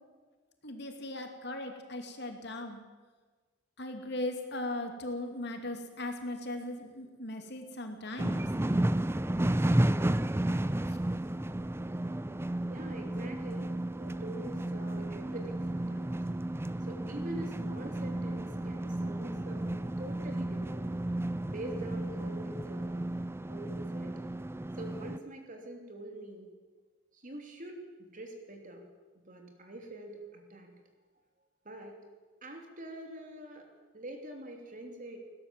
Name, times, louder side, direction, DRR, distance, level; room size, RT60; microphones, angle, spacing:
voice 1, 0.6-2.8 3.8-8.4, left 1 dB, 60° left, 5 dB, 2.7 m, -38 dB
sound 1, 8.2-25.2, right 1 dB, 10° right, 0.5 m, -33 dB
voice 2, 12.7-13.7 14.0-16.2 16.9-19.7 20.0-20.9 21.4-23.1 23.5-24.1 24.8-26.5 27.1-28.8 29.3-30.7 31.6-32.0 32.4-33.7 33.9-35.2, right 1 dB, 40° right, 3 dB, 3.2 m, -45 dB
20.5 x 16.5 x 7.6 m, 1.4 s
head